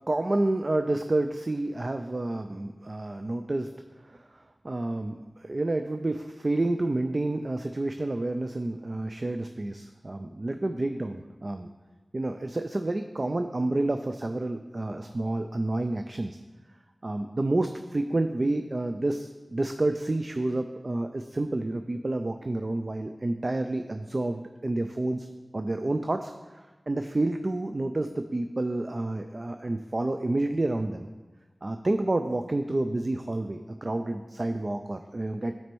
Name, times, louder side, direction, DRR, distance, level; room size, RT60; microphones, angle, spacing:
voice 1, 0.1-3.7 4.0-11.7 12.1-16.4 17.0-25.3 25.5-31.1 31.6-35.5, right 2 dB, 50° right, 7 dB, 0.3 m, -29 dB
9.2 x 4.2 x 4.5 m, 1.3 s
wide cardioid pair, 55°, 0 cm